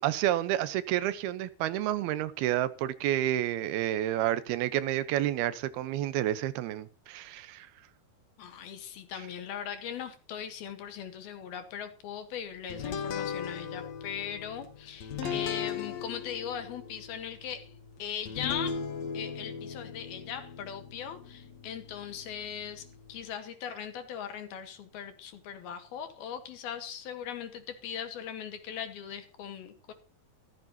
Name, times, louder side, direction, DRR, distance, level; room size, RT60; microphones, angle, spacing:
voice 1, 0.0-7.7 15.2-15.3, right 13 dB, 90° right, 2.9 m, -30 dB
voice 2, 8.4-17.7 18.0-18.8 19.1-29.9, left 8 dB, 80° left, 3.8 m, -39 dB
sound 1, 12.7-23.3, left 7 dB, 60° left, 2.1 m, -39 dB
14.5 x 14.0 x 2.8 m
omnidirectional pair, 4.3 m